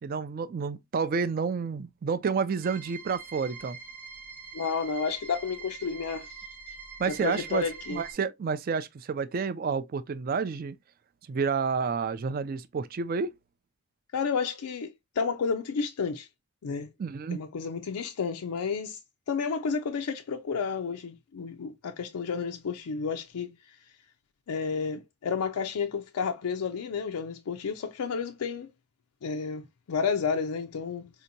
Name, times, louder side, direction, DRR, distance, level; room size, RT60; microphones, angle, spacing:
voice 1, 0.0-3.8 7.0-10.8 11.3-13.3 17.0-17.4, right 5 dB, 40° right, 0.3 m, -30 dB
sound 1, 2.6-8.1, right 5 dB, 5° right, 0.6 m, -44 dB
voice 2, 4.5-6.3 7.0-8.0 14.1-16.3 16.6-16.9 17.3-19.0 19.3-23.5 24.5-28.7 29.2-31.1, left 5 dB, 85° left, 0.4 m, -31 dB
4.3 x 2.8 x 2.6 m
head